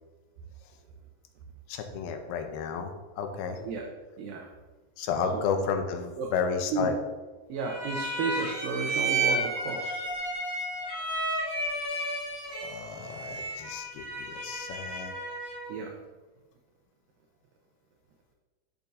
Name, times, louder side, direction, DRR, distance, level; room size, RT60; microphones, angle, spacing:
voice 1, 1.7-3.6 5.0-7.0 10.8-11.0 12.5-15.1, left 5 dB, 85° left, 5 dB, 2.5 m, -32 dB
voice 2, 4.2-4.5 5.3-5.5 6.2-6.3 6.7-6.9 7.5-10.0 15.7-15.9, right 4 dB, 75° right, 1 dB, 2.2 m, -32 dB
sound 1, 7.6-15.8, right 2 dB, 40° right, 3.1 m, -32 dB
10.0 x 7.0 x 2.7 m, 1.3 s
omnidirectional pair, 4.5 m